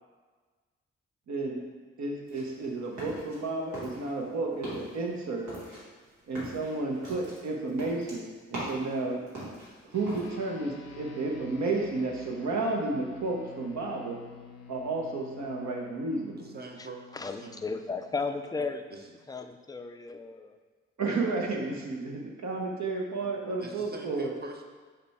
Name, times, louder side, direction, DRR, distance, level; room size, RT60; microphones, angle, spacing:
voice 1, 1.3-1.6 2.0-5.5 6.3-9.2 9.9-14.2 14.7-16.5 21.0-24.3, right 3 dB, 70° right, 0 dB, 0.8 m, -32 dB
sound 1, 2.3-3.4 3.7-4.3 4.5-5.0 5.5-8.9 9.3-10.3, right 1 dB, 85° right, 1.4 m, -40 dB
sound 2, 9.9-19.6, left 6 dB, 60° left, 0.6 m, -50 dB
voice 2, 16.3-17.7 18.9-19.0 23.2-23.3 23.6-24.6, right 3 dB, 35° right, 2 dB, 0.7 m, -44 dB
voice 3, 17.1-18.8 19.3-20.6, left 4 dB, 15° left, 7 dB, 0.3 m, -35 dB
5.2 x 2.3 x 4.1 m, 1.4 s
supercardioid pair, 40°, 29 cm